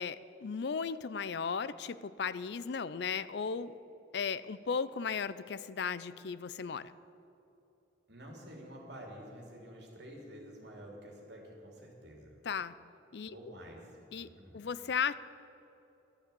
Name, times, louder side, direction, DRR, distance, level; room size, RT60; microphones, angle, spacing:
voice 1, 0.0-3.7 4.1-6.9 12.5-12.7 13.1-13.3 14.1-14.3 14.5-15.1, left 6 dB, 60° left, 16 dB, 0.4 m, -36 dB
voice 2, 8.1-12.4 13.3-14.6, equal, 60° right, 0 dB, 2.9 m, -49 dB
12.5 x 9.2 x 8.4 m, 2.9 s
head